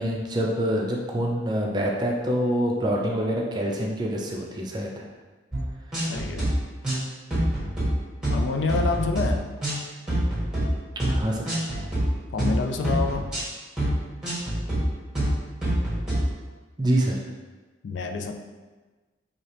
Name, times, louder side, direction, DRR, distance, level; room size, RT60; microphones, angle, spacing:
voice 1, 0.0-5.1 11.0-11.5 16.8-17.2, equal, 20° right, -1 dB, 0.4 m, -26 dB
sound 1, 5.5-5.6 5.9-6.5 6.8-7.0 7.3-7.9 8.2-8.4 8.7-9.3 9.6-9.8 10.1-10.6 11.0-11.2 11.5-12.0 12.4-12.6 12.8-13.4 13.8-13.9 14.2-14.8 15.1-15.3 15.6-16.2, right 1 dB, 5° right, 1.2 m, -26 dB
voice 2, 6.1-6.5 8.3-9.5 12.3-13.4 17.8-18.3, left 4 dB, 70° left, 5 dB, 0.3 m, -28 dB
4.7 x 2.8 x 2.9 m, 1.3 s
head